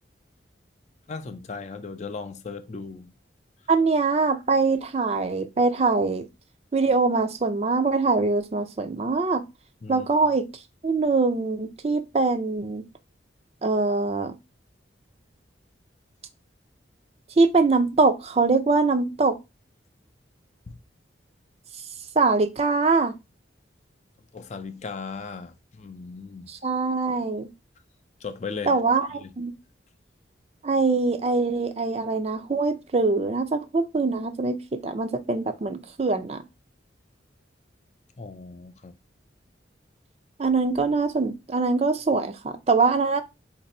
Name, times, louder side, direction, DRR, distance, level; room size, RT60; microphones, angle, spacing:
voice 1, 1.1-3.1 9.8-10.1 20.7-20.8 24.3-26.5 28.2-28.8 29.1-29.3 38.2-38.9, left 4 dB, 35° left, 0.4 m, -37 dB
voice 2, 3.7-6.3 6.7-9.4 9.9-10.5 10.8-12.8 13.6-14.3 17.4-19.4 22.2-23.1 26.5-27.5 28.7-29.5 30.6-36.4 40.4-43.2, right 3 dB, 35° right, 0.4 m, -23 dB
4.3 x 2.6 x 4.1 m
head